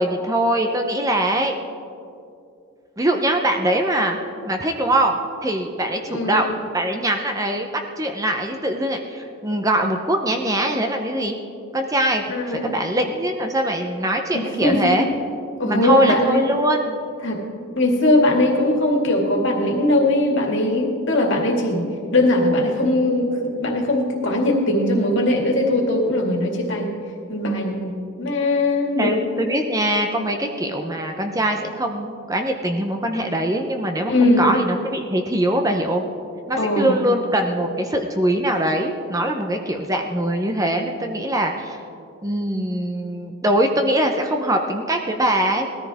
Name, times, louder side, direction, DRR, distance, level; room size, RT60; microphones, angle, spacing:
voice 1, 0.0-1.6 3.0-4.2 4.4-6.5 6.7-7.7 8.0-11.4 11.7-15.1 15.6-17.0 29.0-36.0 36.5-41.8 42.2-45.7, right 1 dB, 15° right, 3 dB, 0.7 m, -22 dB
voice 2, 6.0-6.4 12.3-12.7 14.3-15.0 15.6-16.4 17.2-17.4 17.8-21.8 22.1-26.9 27.3-29.6 34.1-34.5 36.5-37.0, left 1 dB, 55° left, 0 dB, 2.2 m, -20 dB
19.5 x 13.5 x 3.5 m, 2.5 s
head